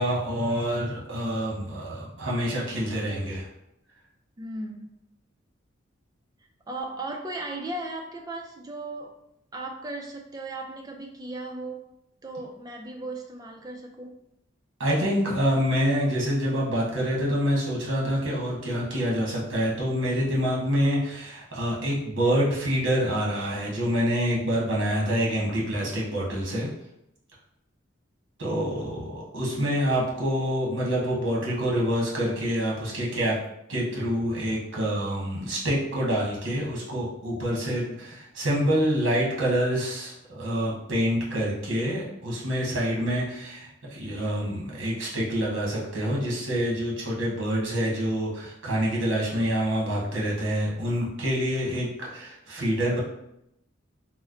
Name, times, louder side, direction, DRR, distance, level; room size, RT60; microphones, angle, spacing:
voice 1, 0.0-3.5 14.8-26.7 28.4-33.4 33.7-53.0, equal, 70° right, -4 dB, 1.1 m, -26 dB
voice 2, 4.4-4.9 6.7-9.2 9.5-11.8 12.2-14.1, right 2 dB, 20° right, 2 dB, 0.3 m, -36 dB
3.1 x 2.0 x 3.7 m, 0.83 s
head